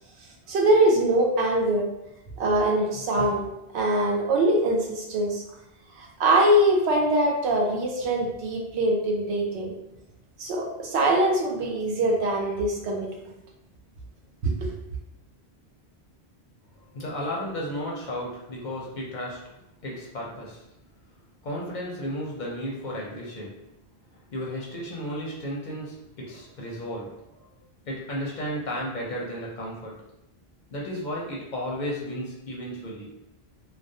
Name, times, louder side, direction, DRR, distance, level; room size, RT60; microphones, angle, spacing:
voice 1, 0.5-1.9 2.4-3.5 3.7-5.4 6.0-9.7 10.4-13.3 14.4-14.7, right 1 dB, 90° right, 0 dB, 0.9 m, -23 dB
voice 2, 16.8-19.5 19.8-20.6 21.4-23.6 24.3-27.4 27.9-30.0 30.7-33.1, equal, 55° left, -3 dB, 0.6 m, -33 dB
2.3 x 2.1 x 2.6 m, 0.87 s
omnidirectional pair, 1.1 m